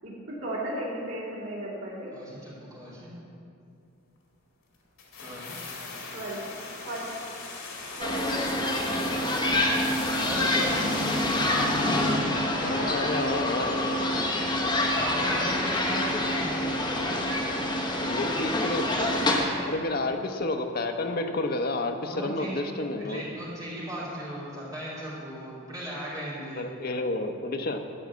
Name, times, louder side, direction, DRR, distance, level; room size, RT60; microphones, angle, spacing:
voice 1, 0.0-2.1 6.1-6.4 6.9-7.0 8.0-8.4, right 1 dB, 80° right, -7 dB, 2.7 m, -35 dB
voice 2, 2.1-3.1 5.2-5.9 10.1-10.8 12.5-12.9 14.9-16.9 19.5-19.7 22.1-22.5 23.0-26.6, equal, 15° right, -9 dB, 2.7 m, -37 dB
sound 1, 5.0-12.3 12.5-12.6, left 4 dB, 80° left, 2.1 m, -40 dB
sound 2, 8.0-19.4, left 1 dB, 20° left, 1.0 m, -26 dB
voice 3, 12.6-14.1 18.0-19.1 19.4-23.2 26.6-27.8, left 2 dB, 45° left, 5 dB, 0.8 m, -30 dB
13.0 x 4.7 x 8.3 m, 2.6 s
head